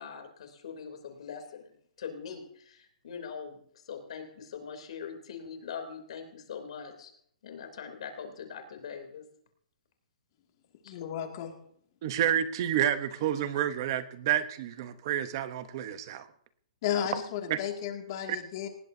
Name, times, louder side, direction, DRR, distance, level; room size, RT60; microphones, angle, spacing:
voice 1, 0.0-1.7 2.0-7.1 7.4-9.2 10.8-11.0, left 6 dB, 55° left, 5 dB, 3.1 m, -42 dB
voice 2, 10.9-11.6 16.8-18.7, left 9 dB, 35° left, 3 dB, 2.3 m, -33 dB
voice 3, 12.0-16.3 17.5-17.6, right 10 dB, 30° right, 12 dB, 0.9 m, -29 dB
19.5 x 18.0 x 2.7 m, 0.65 s
hypercardioid pair, 175°, 4 cm